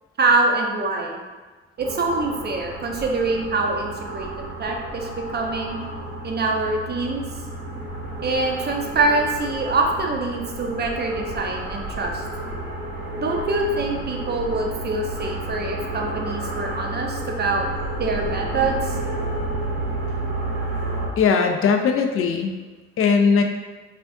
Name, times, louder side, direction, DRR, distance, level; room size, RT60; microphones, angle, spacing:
voice 1, 0.2-1.2 1.8-5.8 6.2-7.2 8.2-12.2 13.2-17.7 18.0-18.9, right 3 dB, 30° right, 1 dB, 0.5 m, -24 dB
sound 1, 1.8-21.1, right 2 dB, 60° right, 0.7 m, -31 dB
voice 2, 21.2-22.5 23.0-23.4, left 5 dB, 45° left, 4 dB, 0.4 m, -19 dB
2.4 x 2.4 x 2.2 m, 1.3 s
hypercardioid pair, 40°, 32 cm